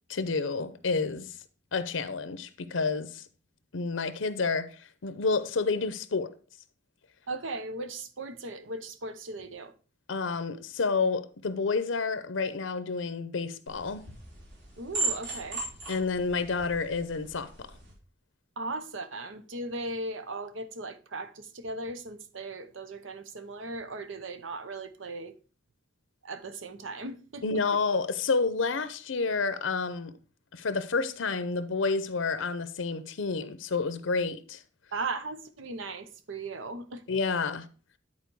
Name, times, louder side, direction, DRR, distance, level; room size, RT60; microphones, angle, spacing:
voice 1, 0.1-1.4 1.7-3.2 3.7-6.3 10.1-14.0 15.9-17.7 27.4-30.1 30.5-34.6 37.1-37.7, left 4 dB, 85° left, 0.7 m, -29 dB
voice 2, 7.3-9.7 14.8-15.6 18.6-25.3 26.2-27.4 34.9-37.0, right 2 dB, 85° right, 0.9 m, -37 dB
sound 1, 13.7-17.9, right 3 dB, 65° right, 3.2 m, -37 dB
10.5 x 4.3 x 4.6 m
head